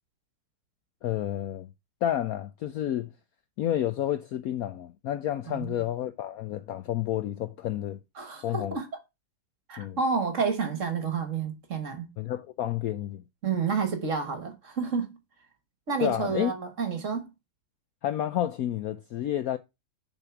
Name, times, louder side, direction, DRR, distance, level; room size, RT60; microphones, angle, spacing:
voice 1, 1.0-1.7 2.0-3.1 3.6-8.0 8.4-8.8 9.8-10.0 12.2-13.2 16.0-16.5 18.0-19.6, left 11 dB, 90° left, 0.7 m, -30 dB
voice 2, 5.5-5.8 8.2-8.9 9.7-12.1 13.4-15.2 15.9-17.2, right 5 dB, 45° right, 1.4 m, -30 dB
6.8 x 4.3 x 5.8 m
omnidirectional pair, 2.1 m